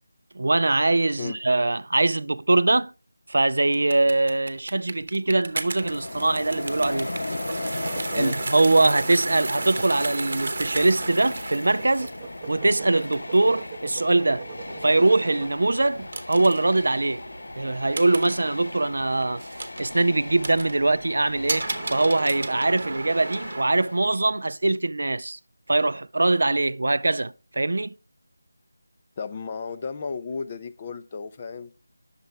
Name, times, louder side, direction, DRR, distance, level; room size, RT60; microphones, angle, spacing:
voice 1, 0.3-2.9 3.3-7.1 8.1-12.1 12.5-14.5 14.8-17.2 17.6-19.4 19.8-25.4 25.7-27.9, right 2 dB, 70° right, 0.4 m, -22 dB
sound 1, 3.7-23.6, right 3 dB, 50° right, 0.9 m, -35 dB
Train, 5.5-24.4, left 2 dB, 85° left, 0.4 m, -37 dB
sound 2, 7.4-15.6, right 6 dB, 20° right, 0.6 m, -43 dB
voice 2, 29.2-31.7, left 5 dB, 25° left, 0.4 m, -34 dB
8.8 x 6.7 x 3.3 m
figure-of-eight pair, 175°, 0 cm